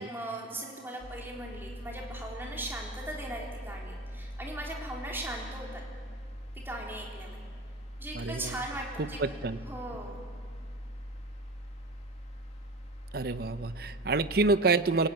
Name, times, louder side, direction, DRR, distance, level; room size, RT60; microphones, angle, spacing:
voice 1, 0.0-5.8 6.6-7.4 8.0-9.2 9.7-10.2, right 1 dB, 15° right, -2 dB, 3.8 m, -39 dB
sound 1, 1.0-14.6, equal, 40° left, 2.6 m, -42 dB
voice 2, 8.1-8.5 9.0-9.6 13.1-15.1, right 3 dB, 55° right, 13 dB, 0.8 m, -27 dB
27.5 x 17.5 x 9.1 m, 2.1 s
head